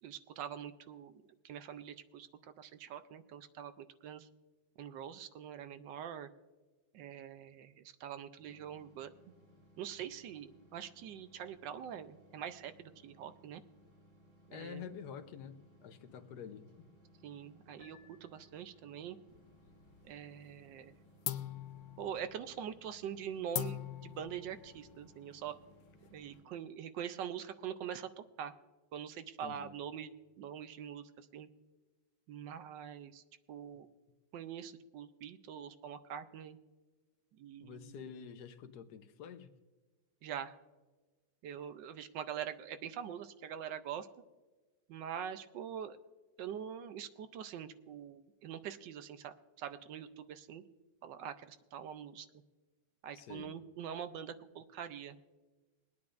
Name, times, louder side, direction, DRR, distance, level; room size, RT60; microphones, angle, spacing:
voice 1, 0.0-4.3 4.8-6.3 6.9-9.1 9.8-13.6 14.5-14.9 17.2-19.2 20.0-20.9 22.0-25.5 26.1-28.5 28.9-30.1 30.4-31.5 32.3-33.2 33.5-33.9 34.3-36.6 37.3-38.0 40.2-40.5 41.4-44.1 44.9-46.0 46.4-50.6 51.0-52.3 53.0-55.2, right 9 dB, 75° right, 11 dB, 1.2 m, -44 dB
sound 1, 8.4-26.4, equal, 50° right, 3.0 m, -64 dB
voice 2, 14.5-16.7 29.4-29.8 37.6-39.5 53.1-53.5, left 7 dB, 60° left, 9 dB, 1.2 m, -48 dB
Piano, 17.8-19.0, left 7 dB, 40° left, 2.2 m, -64 dB
sound 2, 19.3-20.2 20.5-20.9 21.2-26.4, left 12 dB, 80° left, 0.8 m, -43 dB
22.5 x 9.4 x 2.5 m, 1.2 s
omnidirectional pair, 2.2 m